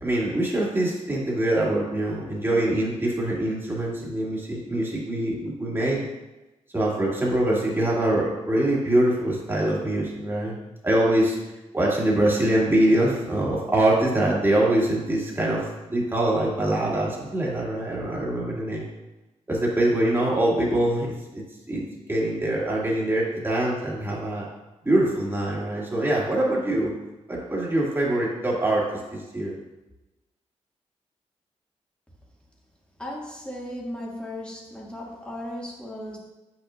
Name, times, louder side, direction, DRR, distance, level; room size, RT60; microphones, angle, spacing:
voice 1, 0.0-6.0 6.7-10.6 10.8-11.4 11.7-18.8 19.5-21.1 21.3-24.5 24.8-26.9 27.3-29.5, right 1 dB, 20° right, -5 dB, 2.3 m, -24 dB
voice 2, 33.0-36.2, left 1 dB, 10° left, -4 dB, 2.2 m, -36 dB
8.5 x 5.9 x 2.6 m, 1.0 s
cardioid pair, 70°, 12 cm